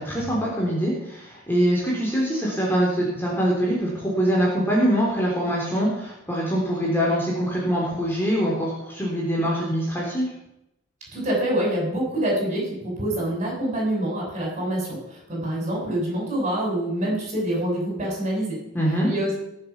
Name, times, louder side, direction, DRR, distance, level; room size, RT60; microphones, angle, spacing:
voice 1, 0.0-10.3 18.7-19.1, equal, 10° left, -4 dB, 3.5 m, -23 dB
voice 2, 11.1-18.6 19.1-19.3, right 1 dB, 35° right, -3 dB, 7.3 m, -26 dB
20.5 x 7.5 x 6.0 m, 0.83 s
head